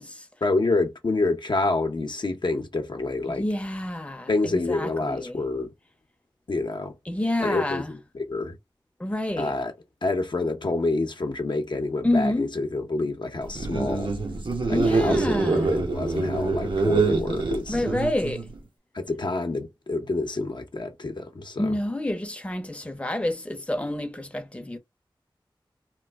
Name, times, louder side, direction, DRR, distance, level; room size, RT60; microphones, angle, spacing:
voice 1, 0.4-3.4 4.3-5.7 6.5-6.9 7.4-8.6 9.4-9.7 10.0-14.1 14.7-17.8 18.9-21.7, left 3 dB, 60° left, 0.7 m, -27 dB
voice 2, 3.3-5.4 7.1-7.9 9.0-9.6 12.0-12.5 14.7-15.7 17.7-18.5 21.6-24.8, left 1 dB, 15° left, 0.7 m, -28 dB
sound 1, 13.5-18.6, right 3 dB, 70° right, 0.9 m, -25 dB
3.0 x 2.1 x 3.4 m
wide cardioid pair, 55°, 9 cm